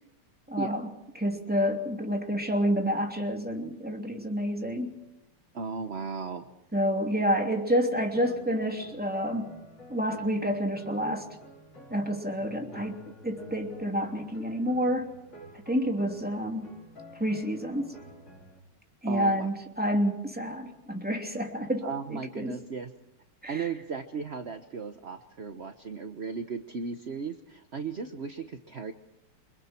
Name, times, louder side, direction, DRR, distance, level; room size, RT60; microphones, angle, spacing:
voice 1, 0.5-4.9 6.7-9.5 9.9-11.3 11.9-15.1 15.7-16.7 17.2-17.9 19.0-22.6 23.4-23.7, equal, 5° right, 3 dB, 2.9 m, -29 dB
voice 2, 5.5-6.5 19.1-19.5 21.8-22.9 23.5-28.9, right 5 dB, 40° right, 8 dB, 1.0 m, -36 dB
sound 1, 8.1-18.6, equal, 70° left, 5.2 m, -50 dB
28.5 x 25.0 x 4.5 m, 0.85 s
omnidirectional pair, 2.4 m